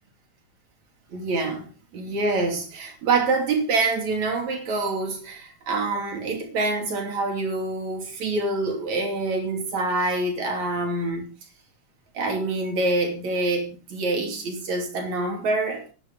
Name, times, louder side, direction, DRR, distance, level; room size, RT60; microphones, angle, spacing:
voice 1, 1.1-1.7 1.9-11.3 12.1-15.9, right 3 dB, 60° right, 4.2 m, -26 dB
16.0 x 11.0 x 3.9 m
omnidirectional pair, 3.6 m